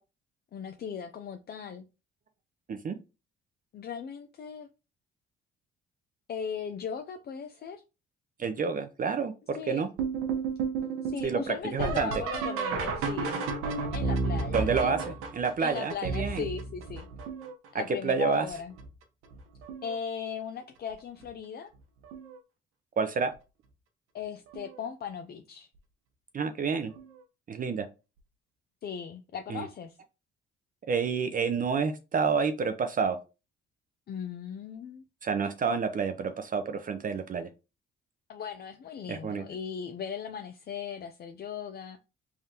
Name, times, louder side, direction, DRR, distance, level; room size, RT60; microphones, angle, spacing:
voice 1, 0.5-1.9 3.7-4.7 6.3-7.8 9.6-9.9 11.0-13.4 13.9-14.9 15.6-17.1 17.7-18.7 19.8-21.7 24.1-25.7 28.8-30.0 34.1-35.0 38.3-42.0, left 7 dB, 50° left, 0.5 m, -38 dB
voice 2, 8.4-9.9 11.2-12.1 14.5-16.5 17.7-18.5 23.0-23.3 26.3-26.9 27.5-27.9 29.5-29.7 30.9-33.2 35.2-37.5 39.1-39.4, right 5 dB, 40° right, 0.6 m, -29 dB
sound 1, 10.0-17.7 18.3-18.9 19.3-20.0 21.2-21.3 22.0-22.4 24.5-24.6 27.0-27.1, right 4 dB, 85° right, 1.0 m, -32 dB
3.5 x 3.5 x 2.8 m
cardioid pair, 80°, 21 cm